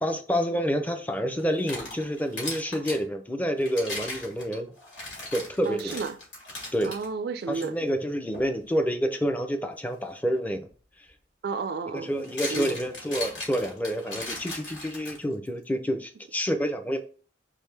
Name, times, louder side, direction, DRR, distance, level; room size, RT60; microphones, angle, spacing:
voice 1, 0.0-4.7 5.3-6.0 6.7-7.0 7.5-10.7 11.9-17.0, equal, 10° left, 0.5 m, -28 dB
sound 1, 1.4-3.0 3.6-7.1 7.5-7.7 8.3-8.6 10.7-10.8 12.0-15.5, left 2 dB, 85° left, 2.3 m, -37 dB
voice 2, 5.7-6.2 6.8-7.8 11.4-12.1 12.5-12.8, right 5 dB, 55° right, 0.3 m, -32 dB
4.5 x 3.5 x 3.3 m
head